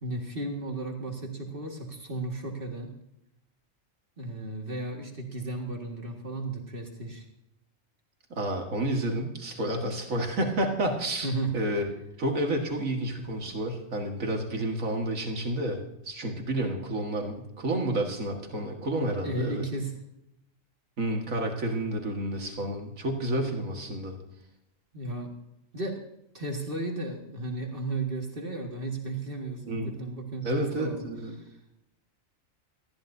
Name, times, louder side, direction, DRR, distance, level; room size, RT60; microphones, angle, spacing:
voice 1, 0.0-2.9 4.2-7.2 11.2-11.5 13.4-13.6 19.2-19.9 24.9-25.3 25.7-26.0 26.3-31.0 31.4-31.5, right 2 dB, 40° right, 1 dB, 2.1 m, -34 dB
voice 2, 8.3-11.9 12.2-15.8 16.1-19.7 21.0-24.1 29.7-30.0 30.4-31.3, right 1 dB, 80° right, 2 dB, 2.2 m, -30 dB
19.5 x 14.0 x 2.7 m, 0.83 s
omnidirectional pair, 1.4 m